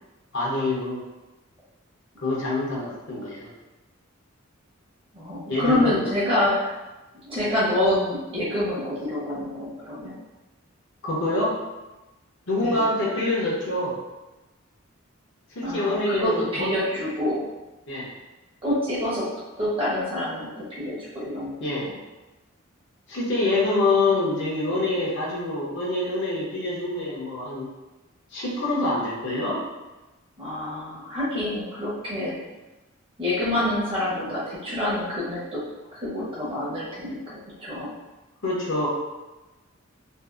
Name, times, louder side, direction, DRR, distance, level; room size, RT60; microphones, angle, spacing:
voice 1, 0.3-1.0 2.2-3.5 5.5-6.0 11.0-11.6 12.5-14.0 15.5-16.8 17.9-18.1 21.6-21.9 23.1-27.7 28.3-29.6 38.4-38.9, left 2 dB, 60° left, -5 dB, 0.7 m, -26 dB
voice 2, 5.1-6.7 7.2-10.1 12.6-12.8 15.6-17.4 18.6-19.3 19.6-21.6 21.8-21.9 23.5-24.1 24.7-24.9 30.4-32.4 33.2-35.6 35.9-37.2 37.6-37.9, left 1 dB, 25° right, -7 dB, 0.8 m, -27 dB
2.7 x 2.5 x 2.4 m, 1.1 s
head